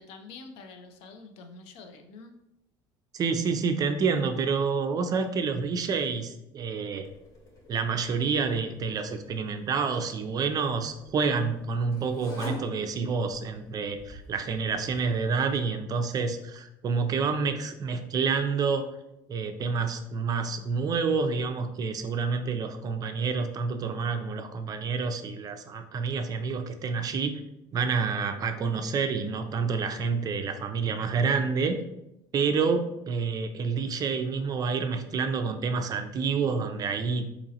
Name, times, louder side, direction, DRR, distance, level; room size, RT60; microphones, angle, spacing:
voice 1, 0.0-2.4, left 4 dB, 70° left, 6 dB, 0.5 m, -46 dB
voice 2, 3.1-7.1 7.7-18.9 19.3-27.4 27.7-31.8 32.3-37.3, right 5 dB, 35° right, 7 dB, 0.4 m, -28 dB
sound 1, 7.0-15.6, equal, 35° left, 1.0 m, -47 dB
3.8 x 2.9 x 2.8 m, 0.86 s
supercardioid pair, 110°, 11 cm